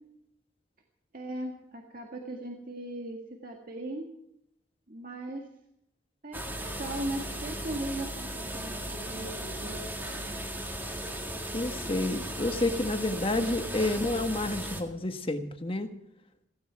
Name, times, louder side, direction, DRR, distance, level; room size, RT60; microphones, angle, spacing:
voice 1, 1.1-4.1 4.9-5.4 6.2-10.4 13.1-13.4, right 1 dB, 50° right, 1 dB, 1.9 m, -38 dB
sound 1, 6.3-14.8, right 1 dB, 10° right, 1.9 m, -36 dB
voice 2, 11.5-15.9, left 2 dB, 30° left, 7 dB, 1.4 m, -29 dB
17.5 x 16.0 x 4.7 m, 0.80 s
head